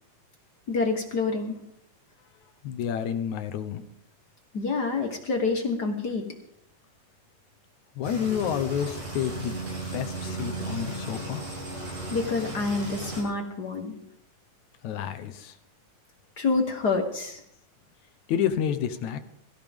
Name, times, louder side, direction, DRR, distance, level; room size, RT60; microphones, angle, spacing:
voice 1, 0.7-1.6 4.5-6.2 12.1-14.0 16.4-17.4, left 4 dB, 55° left, 5 dB, 1.1 m, -27 dB
voice 2, 2.6-3.8 8.0-9.6 9.9-11.5 14.8-15.6 18.3-19.2, left 9 dB, 70° left, 10 dB, 2.2 m, -29 dB
sound 1, 8.0-13.2, right 2 dB, 90° right, 8.4 m, -35 dB
22.5 x 15.0 x 3.6 m, 0.72 s
omnidirectional pair, 3.7 m